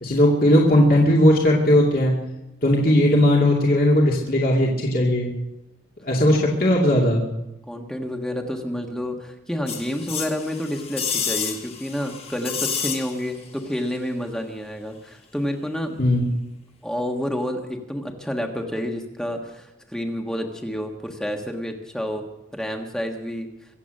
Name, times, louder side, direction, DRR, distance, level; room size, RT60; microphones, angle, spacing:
voice 1, 0.0-2.1 2.6-5.3 6.0-7.2 16.0-16.3, left 1 dB, 50° left, -3 dB, 2.4 m, -18 dB
voice 2, 7.7-16.0 16.8-22.3 22.5-23.5, equal, 5° left, 3 dB, 1.5 m, -29 dB
sound 1, 9.7-13.5 13.7-13.8, left 7 dB, 30° left, 1.5 m, -30 dB
24.0 x 8.3 x 6.6 m, 0.91 s
head